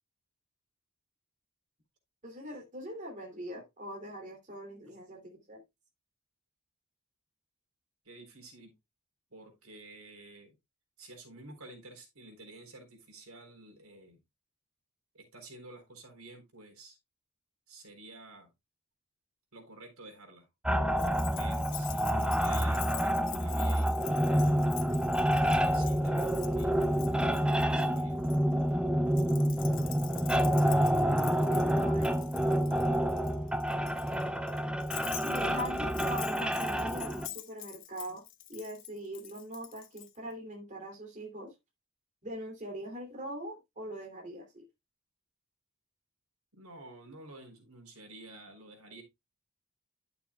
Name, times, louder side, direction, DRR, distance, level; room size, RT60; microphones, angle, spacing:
voice 1, 2.2-5.6 31.5-33.0 35.2-38.2 38.5-41.5 42.2-44.6, equal, 35° right, 2.8 m, -42 dB
voice 2, 8.0-8.7 9.3-10.5 11.0-14.2 15.1-17.0 17.7-18.5 19.5-20.5 21.3-24.6 25.0-25.1 25.4-26.8 27.5-28.2 34.1-34.3 46.5-49.0, right 2 dB, 80° right, 3.8 m, -51 dB
sound 1, 20.7-37.3, equal, 5° right, 0.6 m, -28 dB
Keys jangling, 21.0-28.4 29.1-40.1, left 13 dB, 60° left, 1.1 m, -46 dB
12.0 x 6.9 x 2.3 m
head